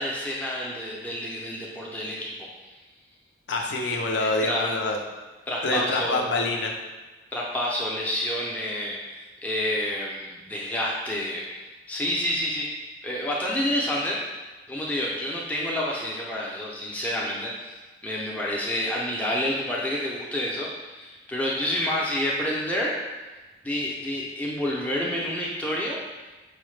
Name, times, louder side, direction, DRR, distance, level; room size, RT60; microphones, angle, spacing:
voice 1, 0.0-2.5 4.2-4.7 5.5-6.3 7.3-12.7 13.0-14.2 14.7-22.9 23.6-26.0, left 1 dB, 10° left, -4 dB, 0.4 m, -29 dB
voice 2, 3.5-5.0 5.6-6.7, left 2 dB, 75° left, 1 dB, 0.5 m, -26 dB
4.6 x 2.1 x 3.1 m, 1.2 s
head